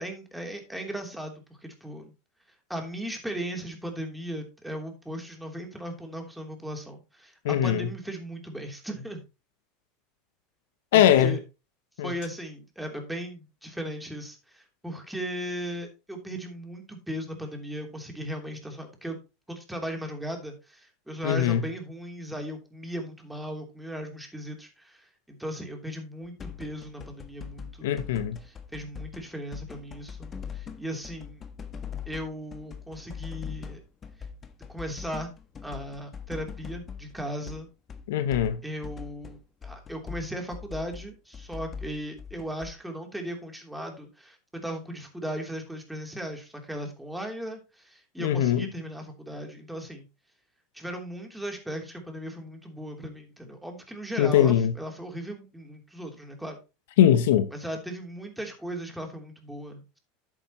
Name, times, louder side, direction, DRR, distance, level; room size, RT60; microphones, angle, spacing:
voice 1, 0.0-2.1 2.7-9.2 10.9-11.4 12.0-19.2 19.5-27.9 28.4-31.4 32.0-33.8 34.7-35.3 35.6-37.7 38.6-39.4 39.6-50.1 50.7-56.6 57.5-60.0, equal, 5° right, 3.3 m, -37 dB
voice 2, 7.4-7.9 10.9-11.4 12.0-12.1 21.2-21.6 27.8-28.4 38.1-38.6 48.2-48.7 54.2-54.7 57.0-57.5, left 10 dB, 75° left, 0.9 m, -21 dB
sound 1, 26.4-29.2 29.5-37.6 37.9-42.7, left 7 dB, 30° left, 1.4 m, -41 dB
10.5 x 8.7 x 3.0 m
hypercardioid pair, 90°, 0 cm